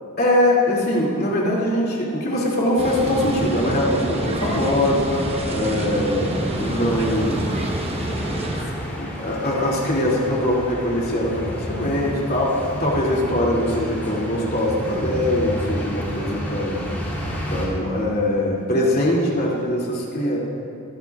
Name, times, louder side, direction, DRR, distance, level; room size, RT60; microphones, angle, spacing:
voice 1, 0.2-5.2 5.5-7.5 8.5-8.7 9.0-16.8 17.5-20.4, left 1 dB, 45° left, -4 dB, 2.4 m, -22 dB
sound 1, 2.8-17.7, equal, 10° left, 2.8 m, -32 dB
sound 2, 2.8-8.6, right 1 dB, 30° right, 1.1 m, -27 dB
23.5 x 11.5 x 2.4 m, 2.5 s
head